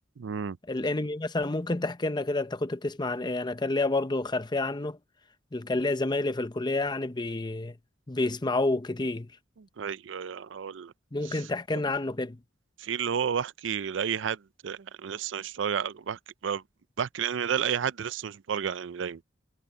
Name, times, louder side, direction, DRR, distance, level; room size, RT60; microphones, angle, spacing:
voice 1, 0.2-0.6 9.8-10.9 11.3-11.4 12.8-14.4 14.6-16.6 17.0-19.2, right 7 dB, 80° right, 0.5 m, -31 dB
voice 2, 0.7-5.0 5.5-7.8 8.1-9.3 11.1-12.4, left 2 dB, 25° left, 0.7 m, -29 dB
head